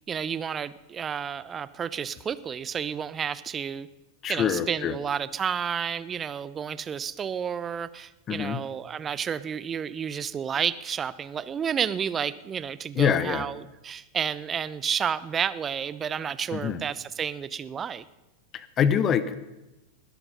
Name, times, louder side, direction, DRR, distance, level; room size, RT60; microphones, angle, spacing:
voice 1, 0.1-3.9 4.3-18.0, right 7 dB, 20° right, 17 dB, 0.6 m, -31 dB
voice 2, 4.2-5.0 8.3-8.6 12.9-13.5 16.5-16.8 18.5-19.4, left 8 dB, 30° left, 15 dB, 1.0 m, -25 dB
20.0 x 12.0 x 5.4 m, 1.0 s
figure-of-eight pair, 90°, 0 cm